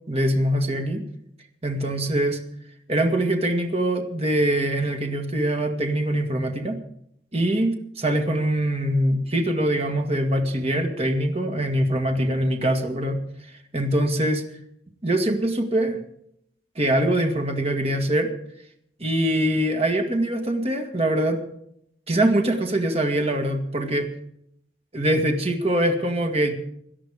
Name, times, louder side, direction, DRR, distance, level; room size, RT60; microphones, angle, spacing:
voice 1, 0.1-1.1 1.6-2.4 2.9-6.8 7.3-13.2 13.7-14.4 15.0-16.0 16.8-18.3 19.0-21.4 22.1-24.1 24.9-26.5, right 1 dB, 35° right, 5 dB, 2.0 m, -23 dB
18.0 x 12.0 x 5.0 m, 0.73 s
head